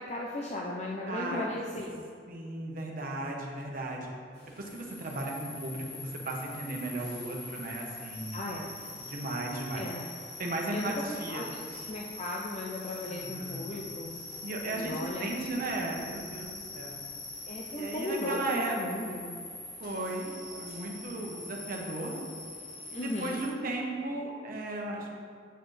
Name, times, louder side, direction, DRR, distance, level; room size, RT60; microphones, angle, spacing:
voice 1, 0.0-2.0 8.3-8.7 9.7-10.0 10.7-10.9 11.3-11.4 11.9-14.1 14.7-15.3 17.5-19.3 22.9-23.4, left 1 dB, 40° left, -2 dB, 0.6 m, -36 dB
voice 2, 1.0-1.4 2.3-4.1 4.6-8.4 9.0-9.9 10.4-11.5 13.1-13.7 14.4-14.9 15.2-17.0 17.8-18.8 19.1-19.2 19.8-22.1 22.9-25.1, right 2 dB, 50° right, 0 dB, 1.1 m, -36 dB
sound 1, 4.3-23.5, left 2 dB, 65° left, 1.9 m, -43 dB
7.8 x 6.5 x 3.3 m, 2.2 s
head